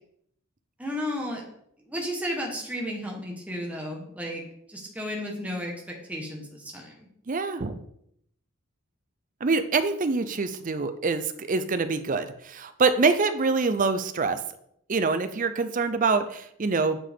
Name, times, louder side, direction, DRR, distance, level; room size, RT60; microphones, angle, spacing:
voice 1, 0.8-1.4 1.8-4.4 4.7-7.1, equal, 5° right, -1 dB, 1.2 m, -33 dB
voice 2, 7.3-7.7 9.4-14.4 14.9-17.0, right 4 dB, 35° right, 11 dB, 0.5 m, -25 dB
8.7 x 4.8 x 3.6 m, 0.71 s
head